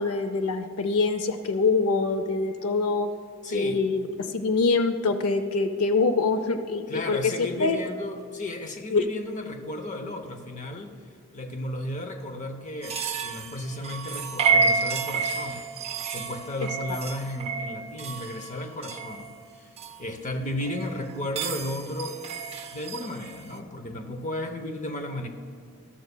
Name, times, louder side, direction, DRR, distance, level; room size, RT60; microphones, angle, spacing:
voice 1, 0.0-3.1 3.5-7.8 8.9-9.1, left 3 dB, 75° left, 10 dB, 0.5 m, -25 dB
voice 2, 3.4-3.8 6.9-10.9 11.3-15.6 16.1-22.2 22.7-25.3, left 1 dB, 35° left, 6 dB, 0.8 m, -34 dB
sound 1, 12.8-20.0 20.6-23.5, right 5 dB, 25° right, 0.4 m, -30 dB
13.5 x 12.5 x 2.2 m, 2.4 s
head